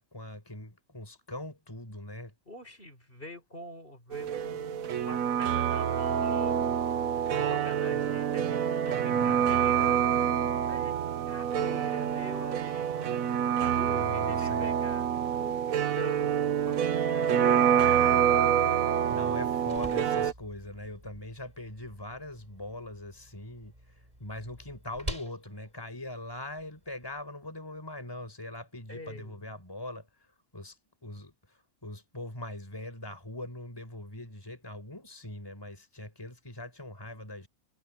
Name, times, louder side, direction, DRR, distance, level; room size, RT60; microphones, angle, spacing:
voice 1, 0.0-2.3 9.1-9.6 13.8-14.7 19.1-23.7 24.2-30.1 30.5-30.8 31.0-31.3 31.8-37.5, left 1 dB, 15° left, 4.6 m, -41 dB
voice 2, 2.5-6.8 7.1-8.6 8.9-10.0 10.7-10.9 11.3-13.1 13.7-19.2 28.9-29.5, left 1 dB, 40° left, 5.4 m, -45 dB
sound 1, 4.1-20.3, right 9 dB, 85° right, 1.3 m, -27 dB
sound 2, 19.3-27.2, right 1 dB, 25° right, 8.3 m, -46 dB
omnidirectional pair, 1.4 m